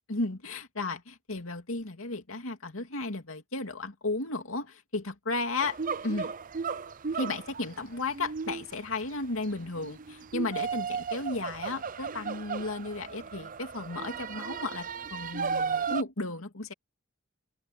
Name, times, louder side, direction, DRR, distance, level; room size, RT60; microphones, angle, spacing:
voice 1, 0.1-6.3 7.1-16.7, left 2 dB, 85° left, 2.5 m, -34 dB
sound 1, 5.6-16.0, right 5 dB, 40° right, 0.6 m, -35 dB
open air
head